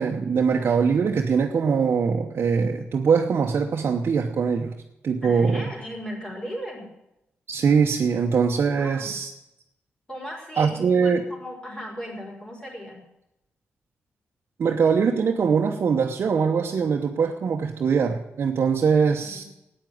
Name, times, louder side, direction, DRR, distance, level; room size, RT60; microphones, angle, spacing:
voice 1, 0.0-4.8 5.0-5.7 7.5-9.3 10.6-11.2 14.6-19.4, right 6 dB, 65° right, 1 dB, 1.0 m, -22 dB
voice 2, 5.2-6.9 8.7-9.1 10.1-13.0 19.2-19.5, equal, 20° left, -1 dB, 5.0 m, -37 dB
12.5 x 9.1 x 9.5 m, 0.90 s
cardioid pair, 105°, 4 cm